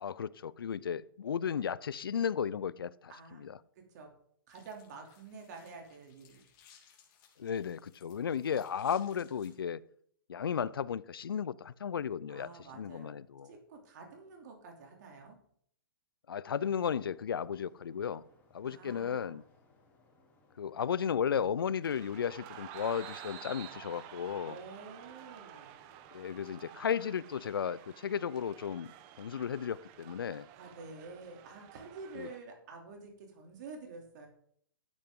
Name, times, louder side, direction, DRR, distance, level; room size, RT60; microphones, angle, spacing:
voice 1, 0.0-3.1 3.4-3.6 7.4-9.8 10.3-13.5 16.3-18.2 18.5-19.4 20.6-24.6 26.1-28.9 29.2-30.5 32.2-32.3, left 7 dB, 80° left, 20 dB, 0.5 m, -34 dB
voice 2, 3.1-4.1 4.5-6.4 8.4-8.6 12.3-15.4 18.6-19.4 24.4-25.7 30.5-34.3, right 4 dB, 50° right, 2 dB, 2.8 m, -49 dB
sound 1, 4.5-9.5, left 8 dB, 35° left, 2.8 m, -63 dB
sound 2, 16.6-26.5, left 3 dB, 15° left, 4.6 m, -67 dB
sound 3, 21.8-32.4, right 11 dB, 35° right, 0.9 m, -51 dB
12.0 x 8.5 x 3.7 m, 0.64 s
hypercardioid pair, 130°, 12 cm